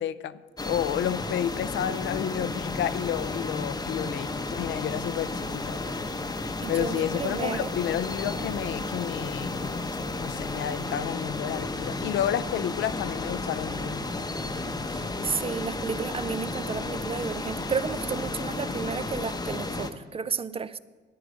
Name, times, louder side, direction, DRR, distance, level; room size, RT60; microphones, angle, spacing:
voice 1, 0.0-5.8 6.7-9.8 10.2-14.0, left 10 dB, 70° left, 0.5 m, -31 dB
sound 1, 0.6-19.9, left 2 dB, 20° left, 0.8 m, -33 dB
voice 2, 6.6-7.7 14.9-20.8, right 6 dB, 30° right, 0.4 m, -32 dB
11.5 x 9.0 x 5.1 m
cardioid pair, 90°, 20 cm